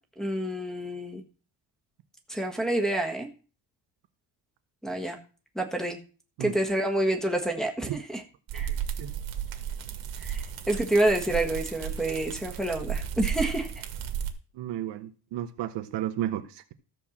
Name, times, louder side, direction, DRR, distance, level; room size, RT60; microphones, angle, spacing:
voice 1, 0.2-1.2 2.3-3.3 4.8-5.2 5.5-6.0 6.4-8.2 8.5-8.7 10.2-13.8, right 1 dB, ahead, 1.4 m, -28 dB
sound 1, 8.5-14.3, right 8 dB, 60° right, 1.8 m, -34 dB
voice 2, 8.5-9.1 14.5-16.7, right 12 dB, 80° right, 1.3 m, -34 dB
13.5 x 4.6 x 7.2 m
cardioid pair, 165°, 42 cm